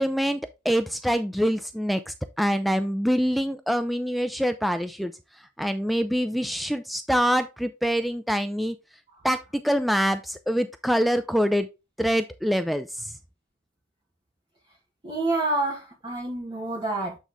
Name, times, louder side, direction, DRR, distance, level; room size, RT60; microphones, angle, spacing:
voice 1, 0.0-5.1 5.6-8.8 9.2-11.7 12.0-13.1, equal, ahead, 0.4 m, -25 dB
voice 2, 15.0-17.2, right 2 dB, 30° right, 1.9 m, -28 dB
8.3 x 3.9 x 3.4 m
head